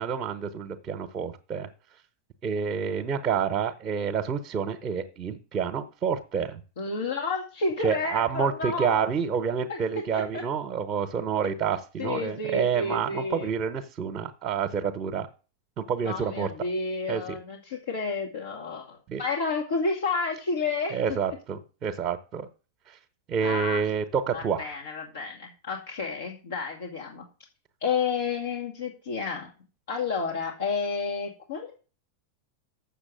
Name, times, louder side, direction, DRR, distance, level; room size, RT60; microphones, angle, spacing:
voice 1, 0.0-1.7 2.4-6.6 7.8-15.3 15.8-16.5 17.1-17.4 19.1-19.2 20.9-22.5 22.9-23.0 23.3-24.7, right 7 dB, 35° right, 5 dB, 1.1 m, -28 dB
voice 2, 6.8-9.1 9.7-9.8 10.1-10.4 12.0-13.5 16.0-21.2 23.4-23.8 24.3-27.2 27.8-29.5 29.9-31.8, left 4 dB, 65° left, -2 dB, 2.0 m, -31 dB
7.2 x 6.9 x 7.7 m, 0.36 s
figure-of-eight pair, 85°, 0 cm